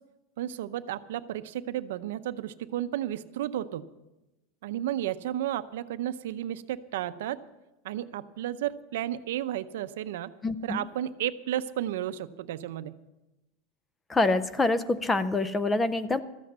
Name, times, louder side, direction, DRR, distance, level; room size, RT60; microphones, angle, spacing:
voice 1, 0.4-3.9 4.6-7.4 7.8-10.3 10.6-13.0, right 12 dB, 75° right, 12 dB, 0.6 m, -33 dB
voice 2, 10.4-10.9 14.1-16.2, left 2 dB, 10° left, 14 dB, 0.5 m, -26 dB
14.0 x 8.1 x 7.4 m, 1.0 s
supercardioid pair, 160°, 0 cm